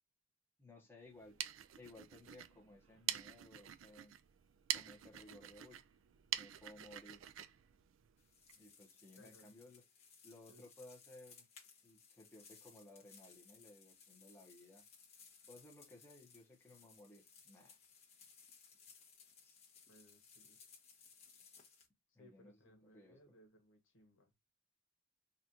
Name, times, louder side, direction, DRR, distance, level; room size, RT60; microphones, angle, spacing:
voice 1, 0.6-1.4 1.8-4.1 4.7-5.8 6.4-7.2 8.6-9.9 10.2-11.5 11.8-14.8 15.5-17.8 19.4-19.6 22.1-23.3, left 1 dB, 10° left, 1.0 m, -59 dB
sound 1, 1.1-8.6, right 12 dB, 80° right, 0.4 m, -46 dB
sound 2, 8.2-21.9, left 6 dB, 35° left, 1.0 m, -63 dB
voice 2, 9.2-9.5 10.5-10.6 19.9-20.6 22.2-24.3, equal, 90° left, 1.2 m, -65 dB
4.0 x 2.5 x 2.8 m
head